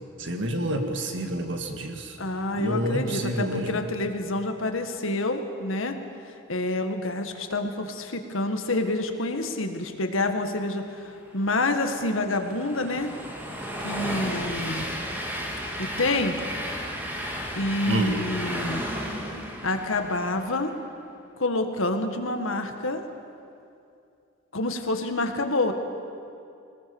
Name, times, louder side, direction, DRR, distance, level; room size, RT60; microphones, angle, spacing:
voice 1, 0.2-2.2 2.5-3.8 17.9-18.2, right 1 dB, 65° right, 4 dB, 2.0 m, -28 dB
voice 2, 2.2-5.9 6.5-10.8 11.3-13.1 13.8-14.9 15.8-16.4 17.6-18.8 19.6-20.7 21.4-23.0 24.5-25.7, left 2 dB, 85° left, 6 dB, 1.8 m, -27 dB
Train, 11.3-20.7, equal, 10° right, 2.3 m, -34 dB
21.5 x 20.0 x 7.1 m, 2.6 s
head